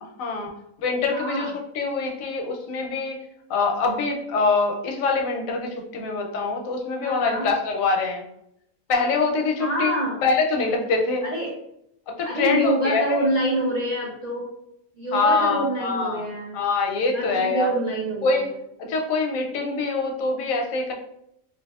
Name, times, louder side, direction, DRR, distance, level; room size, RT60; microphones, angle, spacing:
voice 1, 0.2-0.5 0.8-3.2 3.5-8.2 8.9-10.0 10.2-11.2 12.2-13.2 15.1-16.3 16.5-17.7 18.2-18.5 18.8-20.9, left 3 dB, 80° left, 2 dB, 1.0 m, -24 dB
voice 2, 1.1-1.5 7.0-7.5 9.6-10.2 11.2-11.5 12.2-14.5 15.0-16.6 17.1-18.3, right 1 dB, 55° right, -5 dB, 0.4 m, -26 dB
3.3 x 2.8 x 2.3 m, 0.77 s
omnidirectional pair, 1.4 m